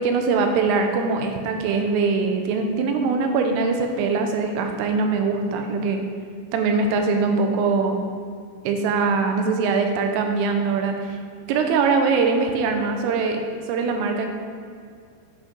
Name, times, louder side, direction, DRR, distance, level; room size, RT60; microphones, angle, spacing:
voice 1, 0.0-6.0 6.5-8.0 8.6-11.2 11.5-14.3, right 4 dB, 85° right, 4 dB, 3.3 m, -22 dB
9.4 x 5.5 x 5.2 m, 2.3 s
omnidirectional pair, 5.8 m